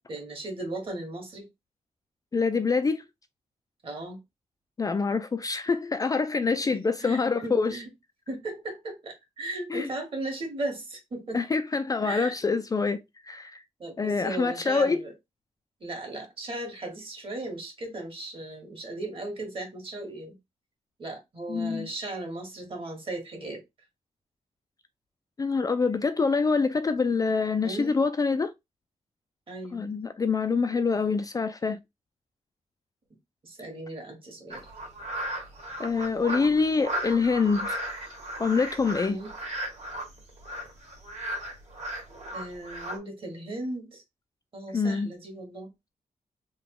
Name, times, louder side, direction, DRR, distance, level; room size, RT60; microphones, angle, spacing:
voice 1, 0.0-1.5 3.8-4.2 7.0-7.9 8.3-11.4 12.0-12.4 13.8-15.1 15.8-20.3 21.0-23.6 27.6-28.0 29.5-29.9 33.4-34.7 39.0-39.3 42.3-44.0 44.5-45.7, right 2 dB, 45° right, 1.6 m, -37 dB
voice 2, 2.3-3.0 4.8-7.8 9.7-9.9 11.3-13.0 13.3-13.6 14.0-15.0 21.5-21.9 25.4-28.5 29.7-31.8 35.8-37.8 38.4-39.2 44.7-45.1, left 4 dB, 30° left, 0.3 m, -25 dB
sound 1, 34.5-43.0, right 1 dB, 70° right, 1.8 m, -35 dB
3.6 x 2.3 x 3.8 m
wide cardioid pair, 110°, 12 cm